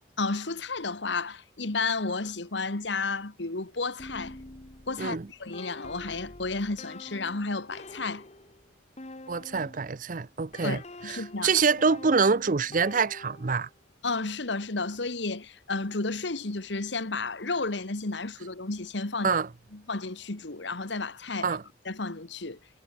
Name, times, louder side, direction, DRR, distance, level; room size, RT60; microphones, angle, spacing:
voice 1, 0.2-4.4 4.9-8.2 10.6-11.5 14.0-19.4 19.7-21.6 21.9-22.6, left 3 dB, 70° left, 1.7 m, -32 dB
sound 1, 4.0-9.9 10.5-13.7, left 2 dB, 35° left, 1.6 m, -46 dB
voice 2, 9.3-10.8 11.1-13.7 19.2-19.5 21.4-21.6, right 5 dB, 45° right, 0.6 m, -25 dB
head